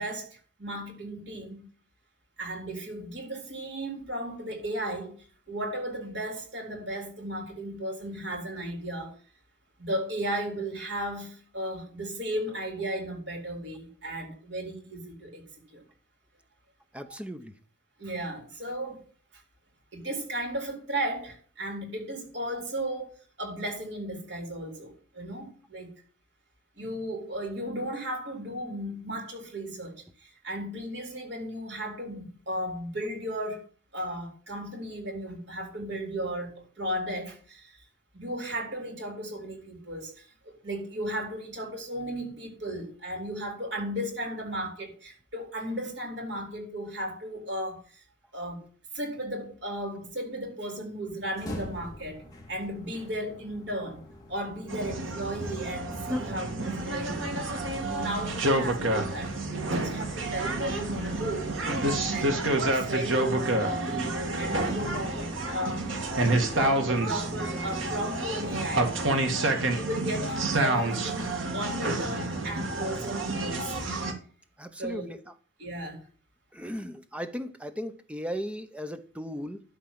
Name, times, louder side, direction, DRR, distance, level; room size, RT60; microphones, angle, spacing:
voice 1, 0.0-1.7 2.4-9.2 9.8-15.4 15.7-15.8 17.0-17.1 18.0-19.0 19.3-19.4 19.9-25.9 26.8-33.6 33.9-37.8 38.1-48.0 48.3-48.6 48.9-54.0 54.3-57.2 57.9-61.5 62.1-65.8 66.5-68.9 69.7-73.9 74.8-75.2 75.6-76.1, right 1 dB, 65° right, 3.9 m, -35 dB
voice 2, 16.9-17.5 56.1-56.4 74.6-75.2 76.5-79.6, equal, 5° right, 0.8 m, -36 dB
sound 1, 51.2-69.4, equal, 20° left, 2.6 m, -46 dB
sound 2, 54.7-74.1, right 2 dB, 80° right, 2.1 m, -29 dB
12.5 x 4.6 x 7.4 m
head